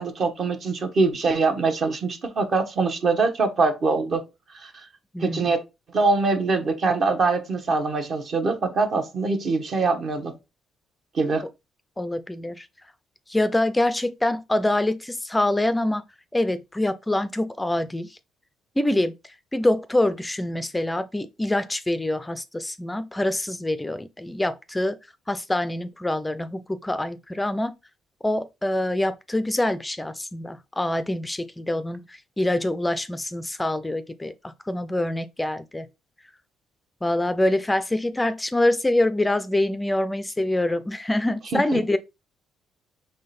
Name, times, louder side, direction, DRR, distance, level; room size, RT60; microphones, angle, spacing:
voice 1, 0.0-4.2 4.5-4.7 5.2-5.6 5.9-10.4 11.1-11.4 41.5-41.8, right 3 dB, 50° right, 1.1 m, -23 dB
voice 2, 12.0-12.7 13.3-16.0 16.3-18.2 18.8-19.1 19.5-25.0 25.3-27.7 28.2-35.9 37.0-42.0, left 1 dB, 10° left, 0.4 m, -25 dB
3.7 x 3.2 x 4.1 m
cardioid pair, 90°, 0 cm